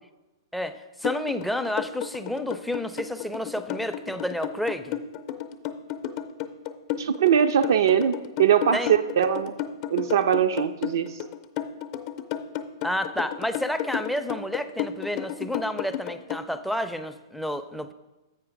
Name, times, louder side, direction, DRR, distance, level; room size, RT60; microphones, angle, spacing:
voice 1, 0.5-4.9 8.7-8.9 12.8-17.9, left 1 dB, ahead, 8 dB, 0.4 m, -30 dB
sound 1, 1.0-16.4, left 11 dB, 45° left, 0.6 m, -32 dB
voice 2, 7.0-9.5 9.9-11.2, right 8 dB, 65° right, 8 dB, 0.4 m, -22 dB
7.9 x 5.5 x 5.0 m, 1.1 s
figure-of-eight pair, 110°, 2 cm